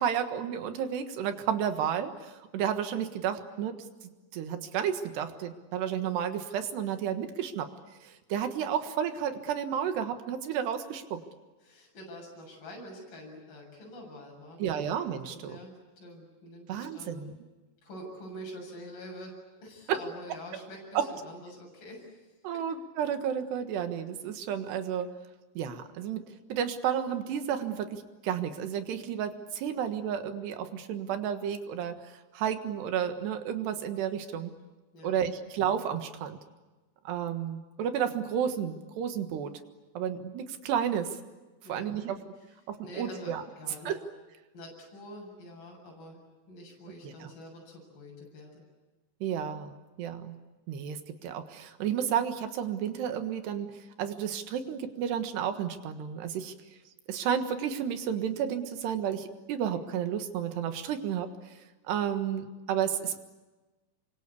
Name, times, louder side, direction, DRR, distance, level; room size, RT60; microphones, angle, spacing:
voice 1, 0.0-3.9 4.3-7.7 8.0-11.2 14.6-15.6 16.7-17.3 19.9-20.0 21.0-21.1 22.4-25.1 25.6-32.0 32.3-34.5 35.0-36.4 37.1-39.5 40.0-41.2 41.7-42.2 42.7-43.4 43.9-44.0 47.0-47.3 49.2-50.4 50.7-51.0 51.2-53.7 54.0-56.5 57.1-61.3 61.9-63.2, right 8 dB, 80° right, 8 dB, 3.7 m, -32 dB
voice 2, 11.6-14.9 15.2-17.2 17.8-19.3 19.6-22.6 34.9-35.3 41.6-42.2 42.8-44.0 44.5-46.2 46.5-48.6, equal, 55° left, -2 dB, 9.0 m, -46 dB
28.0 x 24.5 x 8.4 m, 1.2 s
omnidirectional pair, 4.8 m